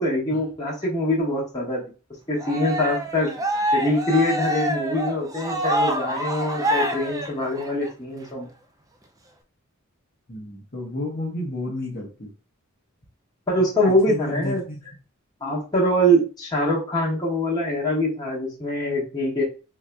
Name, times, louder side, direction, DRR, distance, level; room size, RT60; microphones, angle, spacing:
voice 1, 0.0-1.8 2.3-3.3 3.7-8.5 13.5-14.6 15.4-19.4, equal, 20° left, -5 dB, 1.3 m, -23 dB
Cheering, 2.4-7.9, right 1 dB, 15° right, 0.4 m, -26 dB
voice 2, 10.3-12.3 14.1-14.8, left 1 dB, 40° left, -4 dB, 0.9 m, -31 dB
3.9 x 2.7 x 2.2 m, 0.33 s
head